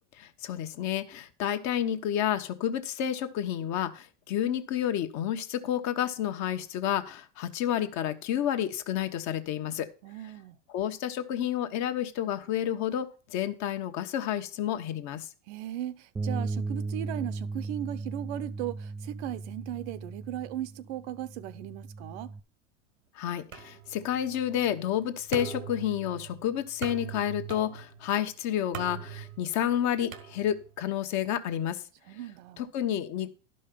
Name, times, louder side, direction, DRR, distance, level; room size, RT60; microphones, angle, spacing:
voice 1, 0.2-9.9 10.7-15.3 23.1-31.8 32.6-33.3, left 10 dB, 45° left, 1.2 m, -30 dB
voice 2, 10.0-10.6 15.5-22.3 32.1-32.6, right 12 dB, 60° right, 0.8 m, -37 dB
Bass guitar, 16.2-22.4, right 3 dB, 10° right, 0.5 m, -36 dB
sound 1, 23.5-30.9, right 9 dB, 90° right, 1.5 m, -42 dB
11.5 x 5.5 x 5.1 m
hypercardioid pair, 110°, 38 cm